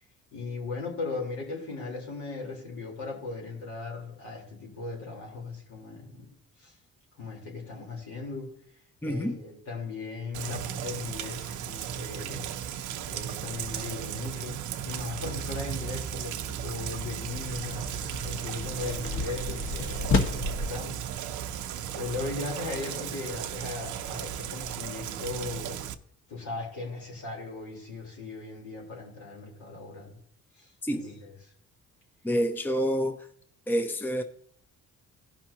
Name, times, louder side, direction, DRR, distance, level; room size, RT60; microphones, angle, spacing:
voice 1, 0.3-6.7 7.2-8.5 9.0-12.5 13.1-17.8 18.2-21.2 21.9-25.8 26.3-30.2 30.6-31.3, left 3 dB, 70° left, 3.9 m, -38 dB
voice 2, 9.0-9.4 30.8-31.1 32.2-33.3 33.7-34.2, equal, 5° left, 0.6 m, -28 dB
Rain, 10.3-25.9, right 10 dB, 75° right, 0.7 m, -36 dB
sound 1, 17.3-20.7, left 3 dB, 45° left, 1.5 m, -31 dB
17.0 x 5.9 x 2.8 m
cardioid pair, 90°, 30 cm